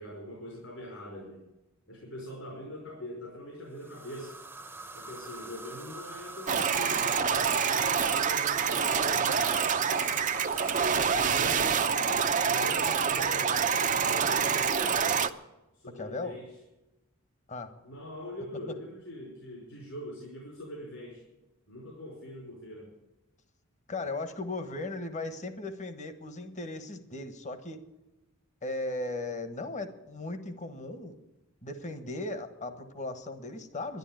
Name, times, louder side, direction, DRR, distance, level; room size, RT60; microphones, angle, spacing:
voice 1, 0.0-1.4 1.9-4.4 4.9-9.8 11.1-11.8 12.5-15.3 15.7-16.5 17.8-21.2 21.7-22.9, equal, 70° left, -2 dB, 5.0 m, -42 dB
sound 1, 3.7-12.3, right 2 dB, 10° right, 0.9 m, -45 dB
sound 2, 6.5-15.3, right 6 dB, 40° right, 0.7 m, -26 dB
voice 2, 16.0-16.4 17.5-17.7 23.9-27.8 28.6-31.2 31.6-34.0, left 2 dB, 35° left, 9 dB, 1.3 m, -37 dB
12.0 x 11.0 x 9.1 m, 1.0 s
head